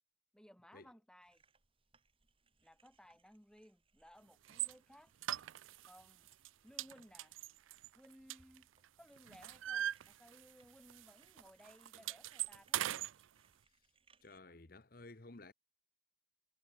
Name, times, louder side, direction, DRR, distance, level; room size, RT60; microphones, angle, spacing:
voice 1, 0.3-1.4 2.6-5.1 5.9-6.3 6.6-7.4 7.9-8.7 9.0-12.9, equal, 5° left, 2.6 m, -61 dB
sound 1, 1.2-14.4, right 5 dB, 25° right, 2.2 m, -74 dB
sound 2, 4.5-4.7 5.2-6.0 6.3-6.5 6.8-8.8 9.2-10.6 10.9-11.1 11.4-13.1, right 12 dB, 85° right, 0.4 m, -40 dB
voice 2, 14.2-15.5, left 2 dB, 45° left, 1.2 m, -54 dB
head